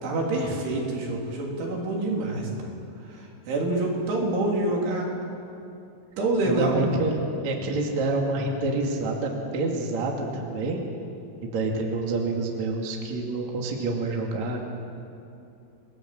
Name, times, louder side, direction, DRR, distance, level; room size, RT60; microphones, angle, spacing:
voice 1, 0.0-2.5 3.5-5.1 6.2-6.9, right 2 dB, 65° right, -1 dB, 5.8 m, -26 dB
voice 2, 6.4-10.8 11.4-14.6, right 2 dB, 45° right, 0 dB, 3.0 m, -27 dB
29.5 x 20.0 x 7.8 m, 2.6 s
omnidirectional pair, 5.9 m